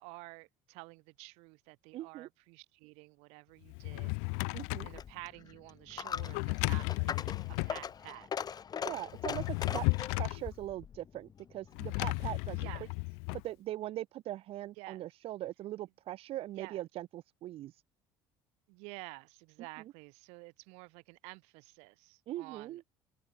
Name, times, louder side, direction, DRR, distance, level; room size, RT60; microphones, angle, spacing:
voice 1, 0.0-4.1 4.8-7.1 7.6-8.3 12.5-12.9 14.8-15.0 16.6-16.9 18.7-22.9, right 29 dB, 80° right, 4.7 m, -50 dB
voice 2, 1.9-2.3 4.5-4.9 8.8-12.6 13.4-17.8 22.3-22.8, right 14 dB, 65° right, 3.1 m, -41 dB
Drawer open or close, 3.7-5.0 6.1-7.8 9.1-10.4 11.7-13.4, left 40 dB or more, 85° left, 0.4 m, -34 dB
Coin (dropping), 4.8-12.3, left 7 dB, 40° left, 1.5 m, -41 dB
supercardioid pair, 90°, 11 cm